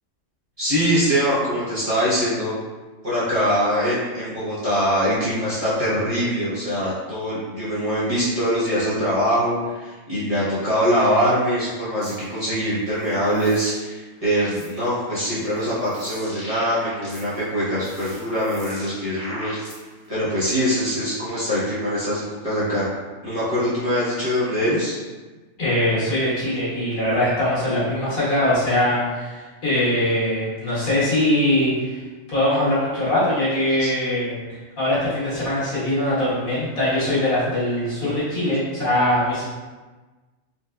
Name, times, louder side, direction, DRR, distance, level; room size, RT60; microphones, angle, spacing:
voice 1, 0.6-2.5 3.0-19.6 20.1-25.0 33.8-33.9, equal, 30° right, -11 dB, 0.8 m, -23 dB
sound 1, 12.0-12.2 12.9-13.8 14.2-14.9 15.4-17.5 17.8-20.1, equal, 10° right, 1.2 m, -39 dB
voice 2, 25.6-32.0 32.3-39.4, left 1 dB, 90° left, -10 dB, 1.8 m, -22 dB
4.1 x 2.3 x 2.2 m, 1.3 s
omnidirectional pair, 1.4 m